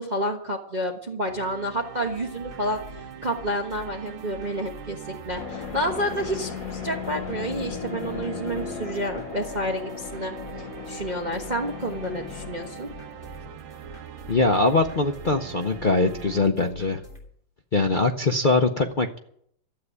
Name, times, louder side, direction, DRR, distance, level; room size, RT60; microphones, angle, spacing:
voice 1, 0.0-2.8 3.2-12.9, equal, 25° right, 2 dB, 1.2 m, -29 dB
sound 1, 1.3-16.4, right 8 dB, 80° right, 1.7 m, -41 dB
sound 2, 2.0-17.3, left 2 dB, 25° left, 3.2 m, -48 dB
sound 3, 5.4-13.9, left 10 dB, 60° left, 1.0 m, -37 dB
voice 2, 14.3-17.0 17.7-19.2, left 3 dB, 90° left, 4 dB, 0.4 m, -22 dB
13.5 x 8.1 x 9.9 m, 0.67 s
omnidirectional pair, 2.1 m